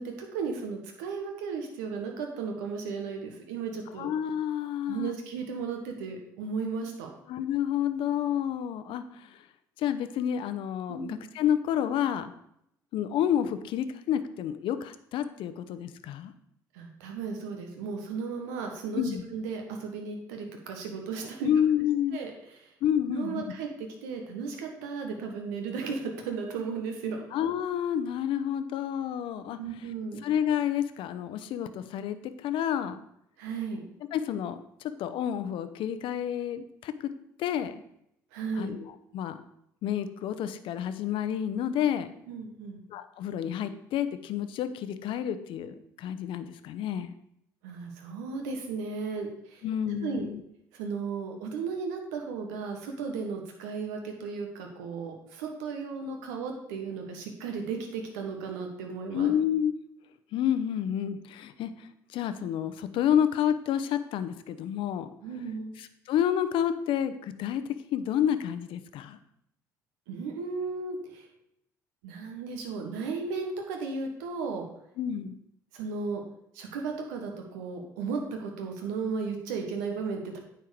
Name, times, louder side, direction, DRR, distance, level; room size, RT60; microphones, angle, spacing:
voice 1, 0.0-4.1 4.9-7.1 10.9-11.1 16.7-21.5 22.1-22.7 23.1-27.2 29.6-30.2 33.4-33.8 38.3-38.7 42.3-42.8 47.6-49.6 50.0-50.3 50.7-59.3 65.2-65.7 70.1-71.3 72.0-74.7 75.7-76.2 76.5-80.4, right 5 dB, 75° right, 3 dB, 1.4 m, -35 dB
voice 2, 4.0-5.1 7.3-9.4 9.8-12.3 12.9-16.3 18.9-19.2 21.4-22.2 22.8-23.4 27.3-29.6 30.2-33.0 34.1-34.6 34.8-37.1 37.4-37.8 38.6-39.4 39.8-42.1 42.9-47.1 49.6-50.4 59.1-59.7 60.3-65.1 65.8-67.6 67.9-69.2 75.0-75.3, left 9 dB, 60° left, 11 dB, 0.7 m, -29 dB
9.3 x 4.5 x 6.5 m, 0.75 s
hypercardioid pair, 55°, 10 cm